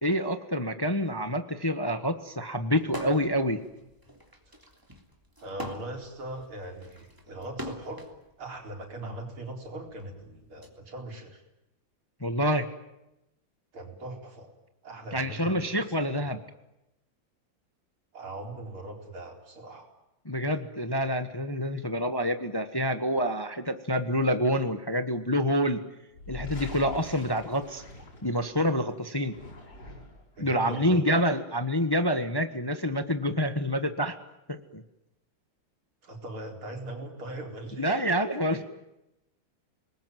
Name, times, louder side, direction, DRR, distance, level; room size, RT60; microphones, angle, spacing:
voice 1, 0.0-3.6 12.2-12.7 15.1-16.4 20.2-25.8 26.3-27.8 28.2-29.3 30.4-34.2 34.5-34.8 37.8-38.6, equal, 15° left, 9 dB, 1.1 m, -27 dB
sound 1, 2.8-3.4 3.8-8.2 9.0-10.7, equal, 10° right, 3.1 m, -41 dB
voice 2, 5.4-8.1 8.4-11.4 13.7-14.5 14.8-15.7 18.1-19.9 30.3-31.0 36.0-38.0 38.3-38.6, right 1 dB, 85° right, 2 dB, 5.2 m, -40 dB
sound 2, 26.1-28.7 29.2-30.3, left 2 dB, 50° left, 6.8 m, -43 dB
29.0 x 20.5 x 9.3 m, 0.90 s
omnidirectional pair, 2.3 m